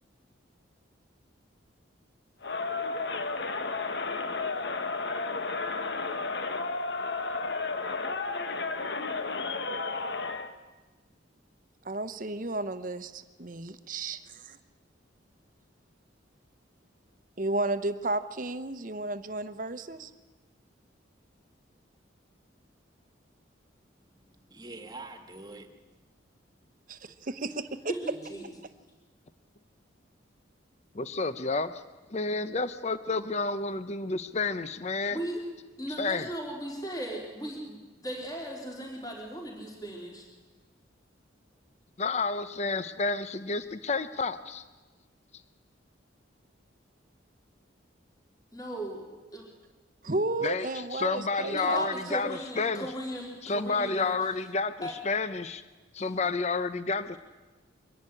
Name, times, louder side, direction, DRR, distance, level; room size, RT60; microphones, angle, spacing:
Crowd, 2.4-10.5, left 3 dB, 60° left, 1.3 m, -32 dB
voice 1, 11.8-14.6 17.4-20.1 26.9-27.8 50.0-51.9, right 2 dB, 45° right, 12 dB, 0.9 m, -33 dB
voice 2, 24.0-26.0, right 2 dB, 20° right, 6 dB, 1.8 m, -46 dB
voice 3, 27.9-28.4 35.1-35.4 35.8-40.3 48.5-49.4 50.1-50.2 51.5-54.4 54.8-55.0 56.0-56.2, right 1 dB, 20° left, -1 dB, 4.0 m, -37 dB
voice 4, 30.9-31.8 32.1-35.2 36.0-36.3 42.0-44.6 50.4-52.9 53.4-55.6 55.9-57.2, left 4 dB, 35° left, 13 dB, 0.6 m, -30 dB
23.5 x 11.0 x 9.9 m, 1.2 s
head